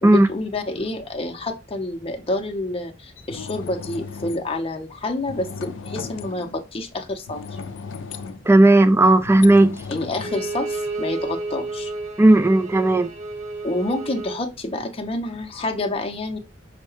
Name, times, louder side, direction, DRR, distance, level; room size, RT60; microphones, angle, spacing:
voice 1, 0.0-7.6 9.9-11.9 13.6-16.4, left 2 dB, 30° left, 0.7 m, -28 dB
sound 1, 3.2-4.5 5.3-6.6 7.3-11.2, left 5 dB, 70° left, 0.4 m, -36 dB
voice 2, 8.5-9.8 12.2-13.1, right 2 dB, 15° right, 0.3 m, -14 dB
Bowed string instrument, 10.2-14.4, right 3 dB, 40° right, 1.2 m, -31 dB
5.6 x 2.2 x 3.0 m
head